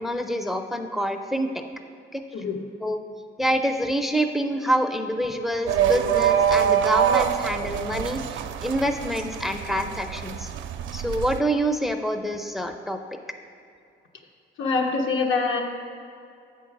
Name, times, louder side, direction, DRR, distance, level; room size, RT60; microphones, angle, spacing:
voice 1, 0.0-1.6 2.1-2.2 2.8-3.0 3.4-10.5 10.9-13.0, equal, ahead, 6 dB, 0.5 m, -26 dB
sound 1, 5.7-11.4, right 9 dB, 75° right, 0.4 m, -25 dB
voice 2, 14.6-15.6, left 4 dB, 80° left, 2 dB, 1.0 m, -24 dB
8.0 x 4.6 x 5.9 m, 2.5 s
cardioid pair, 90°, 20 cm